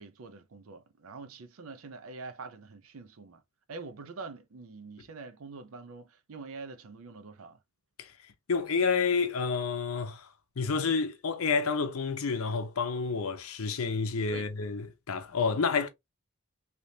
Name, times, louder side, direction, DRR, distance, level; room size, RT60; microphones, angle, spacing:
voice 1, 0.0-3.4 3.7-7.6 14.3-14.5, right 4 dB, 75° right, 0.6 m, -45 dB
voice 2, 8.5-10.3 10.6-15.9, left 5 dB, 85° left, 0.7 m, -29 dB
3.3 x 2.8 x 2.7 m
head